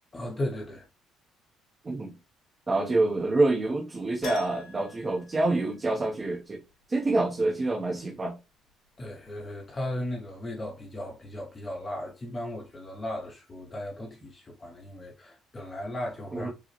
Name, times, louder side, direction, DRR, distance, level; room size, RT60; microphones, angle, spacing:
voice 1, 0.1-0.9 9.0-16.5, left 1 dB, 20° left, 0.6 m, -36 dB
voice 2, 2.7-6.6 6.9-8.3 16.3-16.5, right 2 dB, 20° right, 0.6 m, -26 dB
Keyboard (musical), 4.2-6.3 6.5-6.6 9.3-9.4 9.7-9.8, left 5 dB, 75° left, 1.6 m, -44 dB
4.7 x 2.0 x 2.9 m
cardioid pair, 155°, 0 cm